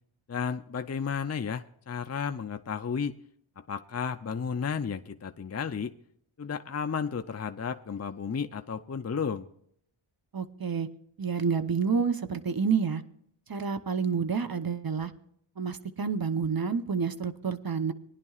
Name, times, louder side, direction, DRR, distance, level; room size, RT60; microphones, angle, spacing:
voice 1, 0.3-3.2 3.6-5.9 6.4-9.5, left 6 dB, 35° left, 8 dB, 0.5 m, -33 dB
voice 2, 10.3-10.9 11.2-13.0 13.5-15.1 15.6-17.9, right 6 dB, 45° right, 10 dB, 0.9 m, -29 dB
21.0 x 10.5 x 2.4 m, 0.68 s
wide cardioid pair, 50°, 49 cm